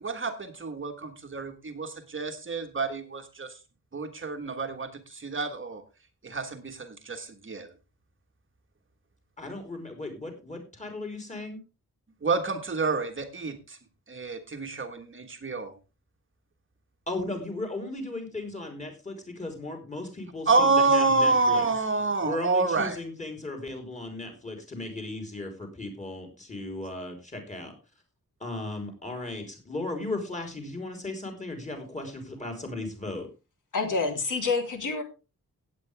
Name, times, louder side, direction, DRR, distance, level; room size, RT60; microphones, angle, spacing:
voice 1, 0.0-3.6 3.9-5.8 6.2-7.7 12.2-13.8 14.1-15.7 20.5-23.0, right 3 dB, 35° right, 6 dB, 1.4 m, -28 dB
voice 2, 9.4-11.6 17.1-21.7 22.2-27.7 28.4-33.3, left 2 dB, 20° left, 3 dB, 3.8 m, -36 dB
voice 3, 33.7-35.0, left 4 dB, 65° left, 3 dB, 3.3 m, -27 dB
16.5 x 8.9 x 3.4 m, 0.29 s
wide cardioid pair, 175°, 34 cm